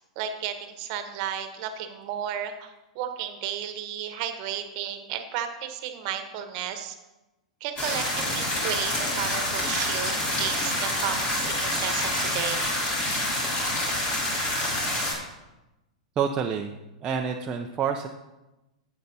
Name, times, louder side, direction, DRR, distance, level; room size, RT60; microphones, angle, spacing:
voice 1, 0.2-7.0 7.6-12.7, right 9 dB, 50° right, 8 dB, 1.1 m, -33 dB
sound 1, 7.8-15.1, left 1 dB, 30° left, 3.0 m, -27 dB
voice 2, 16.2-18.1, right 7 dB, 25° right, 2 dB, 0.6 m, -28 dB
11.5 x 8.1 x 2.8 m, 1.0 s
hypercardioid pair, 105°, 4 cm